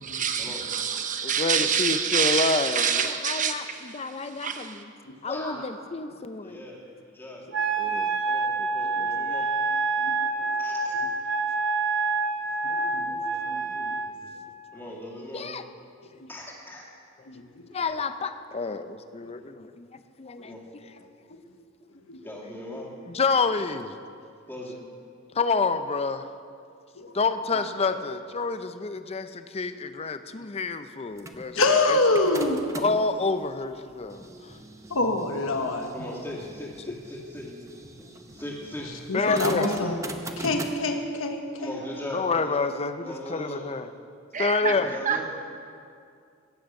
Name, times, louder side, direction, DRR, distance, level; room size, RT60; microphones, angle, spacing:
voice 1, 0.0-4.8 44.3-45.2, right 7 dB, 40° right, 6 dB, 0.9 m, -27 dB
voice 2, 1.2-4.9 5.2-6.6 7.8-8.2 9.0-9.1 15.3-15.6 17.7-19.8 20.2-20.8 21.3-21.4 23.1-23.9 25.3-26.3 27.1-32.0 32.7-34.2 39.1-39.7 42.1-43.9 44.4-44.9, left 4 dB, 30° left, 10 dB, 0.5 m, -28 dB
voice 3, 5.3-5.7 6.3-6.8 7.1-7.5 8.3-9.5 10.6-11.0 14.7-15.5 16.3-16.9 20.4-20.6 22.2-22.9 24.5-24.8 27.8-28.0 35.9-37.5 38.4-38.9 39.2-39.4 39.8-39.9 41.6-42.7 43.0-43.6 44.6-45.2, left 1 dB, 10° left, -3 dB, 2.3 m, -39 dB
Wind instrument woodwind instrument, 7.5-14.1, right 3 dB, 65° right, 1.0 m, -27 dB
voice 4, 12.6-14.0 17.3-17.6 19.2-19.3 20.4-20.5 21.3-21.4 22.1-22.2 27.0-27.1 31.5-32.6 34.9-36.1 39.1-40.0 40.4-41.8, left 2 dB, 80° left, 4 dB, 1.2 m, -26 dB
sound 1, 31.2-33.1 33.7-40.7, right 2 dB, 15° right, 0.7 m, -40 dB
16.5 x 7.8 x 7.1 m, 2.4 s
head